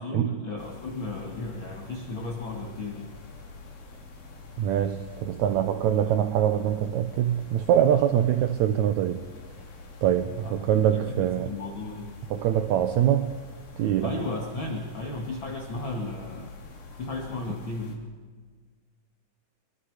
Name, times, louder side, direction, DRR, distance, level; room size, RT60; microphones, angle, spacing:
voice 1, 0.0-3.1 5.5-5.6 5.9-6.0 10.4-12.1 14.0-16.5 17.0-18.0, left 2 dB, 40° left, 1 dB, 2.4 m, -35 dB
sound 1, 0.6-18.0, left 3 dB, 85° left, 4.9 m, -45 dB
voice 2, 4.6-9.2 10.0-11.5 12.3-13.3 13.8-14.1, right 10 dB, 75° right, 9 dB, 1.8 m, -24 dB
25.0 x 23.5 x 4.9 m, 1.5 s
omnidirectional pair, 4.0 m